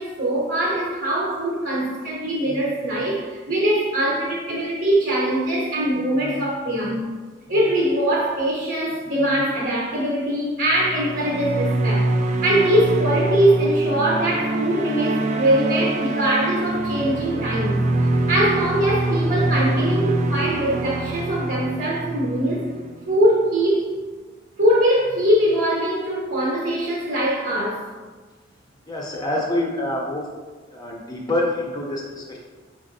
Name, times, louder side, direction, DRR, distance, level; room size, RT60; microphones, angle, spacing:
voice 1, 0.0-7.1 7.5-12.1 12.4-22.7 23.1-23.9 24.6-27.9, right 1 dB, 60° right, -5 dB, 0.8 m, -22 dB
sound 1, 10.7-23.2, right 2 dB, 35° right, 0.3 m, -25 dB
voice 2, 28.9-30.2 30.7-32.4, left 1 dB, 20° left, -1 dB, 0.5 m, -26 dB
4.3 x 4.0 x 2.6 m, 1.3 s
head